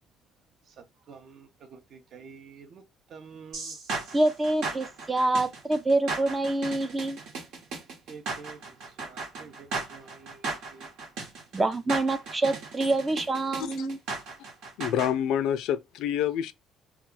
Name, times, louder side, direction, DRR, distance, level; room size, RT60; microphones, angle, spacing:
voice 1, 1.1-2.8 3.1-3.8 8.1-8.6 9.0-10.9, right 5 dB, 55° right, 0.6 m, -48 dB
sound 1, 3.5-15.1, right 3 dB, 80° right, 1.1 m, -36 dB
voice 2, 4.1-7.2 11.5-14.0, right 2 dB, 20° right, 0.3 m, -26 dB
voice 3, 14.8-16.5, left 10 dB, 80° left, 0.3 m, -27 dB
2.3 x 2.2 x 3.7 m
cardioid pair, 105°, 0 cm